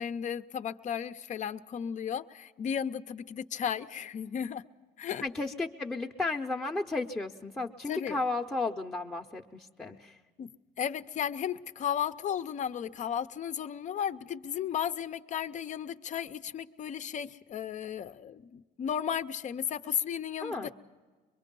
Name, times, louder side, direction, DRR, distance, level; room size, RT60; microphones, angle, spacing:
voice 1, 0.0-4.6 5.0-5.2 7.9-8.2 10.4-10.5 10.8-20.7, left 8 dB, 45° left, 11 dB, 0.6 m, -34 dB
voice 2, 5.2-10.2 20.4-20.7, left 3 dB, 10° left, 0 dB, 0.7 m, -34 dB
23.0 x 22.5 x 5.4 m, 1.4 s
cardioid pair, 110°, 17 cm